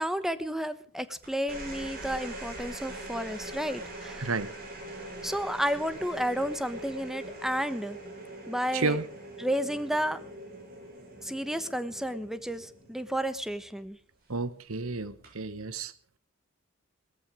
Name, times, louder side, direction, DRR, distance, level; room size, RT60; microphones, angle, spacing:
voice 1, 0.0-4.3 5.2-8.0 8.5-9.0 9.4-10.2 11.2-14.0, equal, ahead, 12 dB, 1.0 m, -32 dB
sound 1, 1.2-13.8 15.1-15.5, right 1 dB, 45° right, 7.8 m, -43 dB
voice 2, 4.2-4.5 8.7-9.1 14.3-15.9, right 3 dB, 80° right, 15 dB, 1.1 m, -31 dB
19.0 x 14.5 x 5.0 m, 0.42 s
head